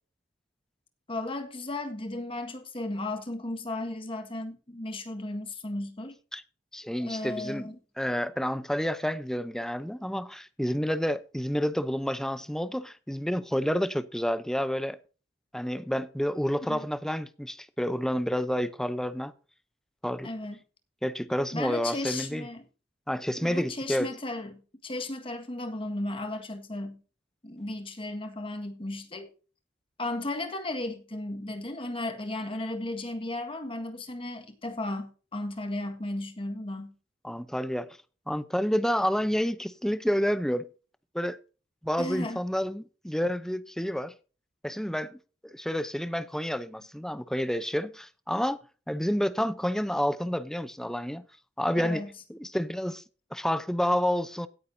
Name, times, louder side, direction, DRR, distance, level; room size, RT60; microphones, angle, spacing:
voice 1, 1.1-6.2 7.0-7.8 16.7-16.9 20.2-20.6 21.5-22.6 23.4-27.0 27.4-29.3 30.0-36.9 42.0-42.4 51.8-52.1, left 2 dB, 30° left, 1.7 m, -35 dB
voice 2, 6.7-15.0 15.5-19.3 20.0-20.3 21.0-22.5 23.1-24.1 37.2-37.9 38.3-40.7 41.1-41.4 41.8-44.1 44.6-48.6 48.9-51.2 51.6-52.0 52.3-53.0 53.3-54.5, equal, 5° left, 0.7 m, -29 dB
17.0 x 9.5 x 2.7 m
head